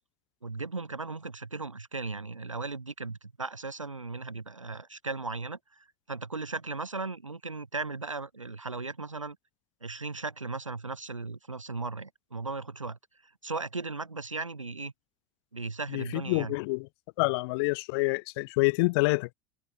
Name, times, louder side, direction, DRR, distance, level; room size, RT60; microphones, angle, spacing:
voice 1, 0.4-9.4 9.8-13.0 13.4-14.9 15.5-16.6, right 3 dB, 90° right, 0.5 m, -37 dB
voice 2, 15.9-16.9 17.2-19.3, left 26 dB, 55° left, 0.4 m, -27 dB
figure-of-eight pair, 70°, 16 cm